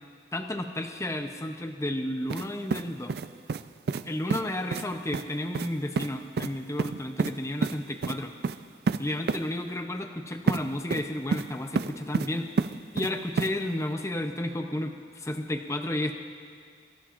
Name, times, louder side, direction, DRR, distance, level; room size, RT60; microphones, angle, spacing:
voice 1, 0.3-3.1 4.0-8.3 9.0-12.5 12.9-16.3, left 1 dB, 15° left, 5 dB, 0.7 m, -32 dB
sound 1, 2.3-2.5 2.7-3.6 3.9-4.0 4.3-4.4 4.7-4.9 5.1-5.3 5.5-5.7 6.0-6.1 6.4-6.5 6.8-7.3 7.6-7.8 8.0-8.2 8.4-8.6 8.9-9.0 9.3-9.4 10.5-10.6 10.9-11.5 11.8-12.3 12.6-13.1 13.4-13.5, right 4 dB, 55° right, 0.3 m, -28 dB
24.0 x 14.0 x 2.5 m, 2.1 s
head